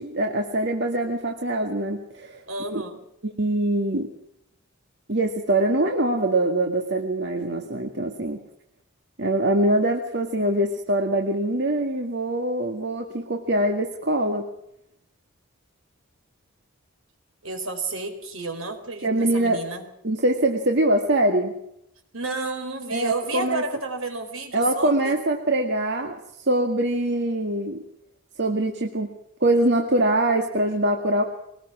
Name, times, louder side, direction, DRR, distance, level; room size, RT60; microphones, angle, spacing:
voice 1, 0.0-2.4 2.7-2.8 3.2-4.1 5.1-8.4 9.2-14.5 19.0-19.6 20.0-21.5 22.9-23.6 24.5-26.2 26.5-27.8 28.4-29.1 29.4-31.2, right 1 dB, 55° right, 3 dB, 2.0 m, -23 dB
voice 2, 2.5-3.0 17.4-19.8 22.1-25.1, right 3 dB, 80° right, 6 dB, 4.6 m, -31 dB
23.0 x 19.5 x 6.2 m, 0.78 s
head